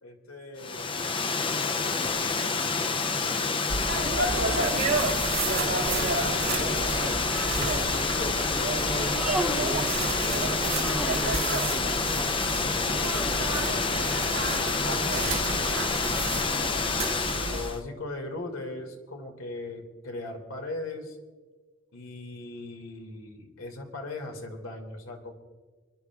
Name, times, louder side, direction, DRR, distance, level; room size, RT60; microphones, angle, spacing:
voice 1, 0.0-2.8 3.3-3.8 4.4-5.7 6.2-7.2 8.4-9.1 12.6-16.4 17.5-21.2 21.9-25.3, left 2 dB, 90° left, 3 dB, 2.2 m, -41 dB
Water, 0.6-17.8, left 4 dB, 25° left, 0.5 m, -28 dB
sound 1, 3.7-17.7, right 3 dB, 75° right, 1.5 m, -31 dB
voice 2, 6.4-12.5, right 1 dB, 30° right, 7 dB, 0.7 m, -39 dB
Human voice, 9.0-10.0 10.8-11.5 13.0-13.7, right 1 dB, 5° right, 1.0 m, -35 dB
29.0 x 11.0 x 2.4 m, 1.4 s
head